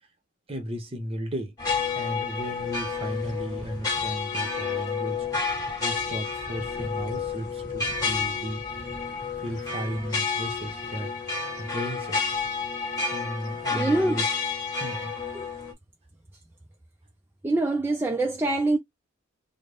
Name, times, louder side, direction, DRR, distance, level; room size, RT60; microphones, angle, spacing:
voice 1, 0.5-1.5 1.9-5.3 5.8-8.6 9.4-12.3 13.1-14.2 14.8-15.1, equal, 30° right, 0.8 m, -35 dB
sound 1, 1.6-15.7, left 5 dB, 20° left, 1.4 m, -30 dB
voice 2, 13.7-14.3 15.3-15.5 17.4-18.8, right 2 dB, 10° right, 0.3 m, -24 dB
3.8 x 2.1 x 3.4 m
head